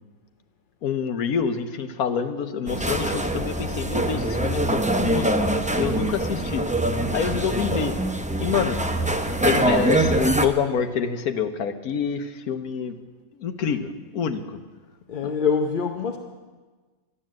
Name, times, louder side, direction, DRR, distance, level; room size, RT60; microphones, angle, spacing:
voice 1, 0.8-5.4 5.8-6.6 7.1-8.0 8.4-8.8 9.4-13.0 13.4-14.6, left 7 dB, 85° left, 9 dB, 1.4 m, -27 dB
sound 1, 2.7-10.5, right 1 dB, 10° right, 0.4 m, -24 dB
voice 2, 15.1-16.2, left 6 dB, 45° left, 4 dB, 0.7 m, -24 dB
12.5 x 11.0 x 7.4 m, 1.3 s
omnidirectional pair, 1.5 m